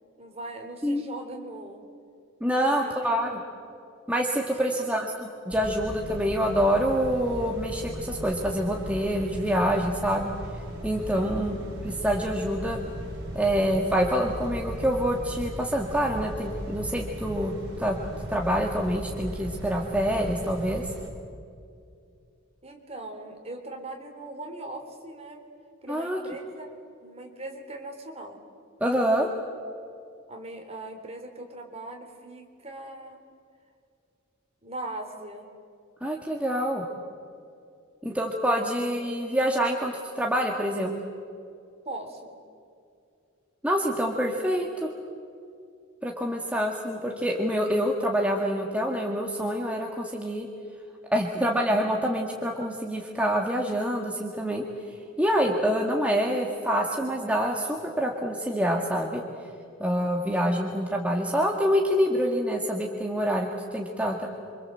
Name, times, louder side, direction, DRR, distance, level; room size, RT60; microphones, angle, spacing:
voice 1, 0.2-1.8 2.6-3.4 4.6-5.0 11.1-11.6 22.6-25.4 25.8-26.8 27.0-28.4 30.3-33.2 34.6-35.5 38.6-38.7 41.8-42.4, right 2 dB, 30° right, 3 dB, 3.7 m, -40 dB
voice 2, 2.4-3.3 4.1-10.3 10.8-11.5 11.8-12.8 13.3-17.5 17.8-18.0 18.3-20.8 25.9-26.2 28.8-29.3 36.0-36.8 38.0-41.0 43.6-44.9 46.0-50.5 51.1-54.6 55.2-59.2 59.8-64.3, equal, 5° right, 0 dB, 1.9 m, -26 dB
sound 1, 5.5-21.1, equal, 60° right, 4.9 m, -37 dB
28.0 x 25.5 x 7.8 m, 2.4 s
head